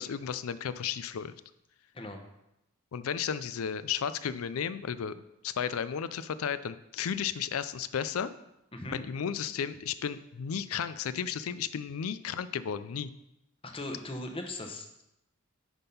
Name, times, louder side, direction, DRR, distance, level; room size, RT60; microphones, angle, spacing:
voice 1, 0.0-1.3 2.9-8.3 8.9-13.1, left 7 dB, 90° left, 14 dB, 0.4 m, -34 dB
voice 2, 13.6-15.0, left 1 dB, 25° left, 3 dB, 1.0 m, -39 dB
10.0 x 3.6 x 5.4 m, 0.86 s
head